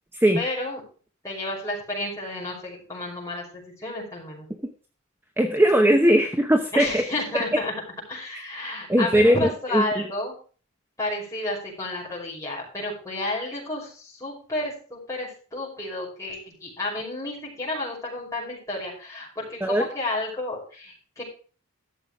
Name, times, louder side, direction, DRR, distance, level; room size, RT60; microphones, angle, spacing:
voice 1, 0.3-0.8 1.2-4.5 6.7-7.8 8.1-10.4 11.0-21.2, left 2 dB, 15° left, -5 dB, 5.8 m, -31 dB
voice 2, 5.4-6.9 8.9-9.8 19.6-19.8, equal, 10° right, 5 dB, 0.9 m, -19 dB
13.5 x 6.9 x 4.8 m, 0.39 s
head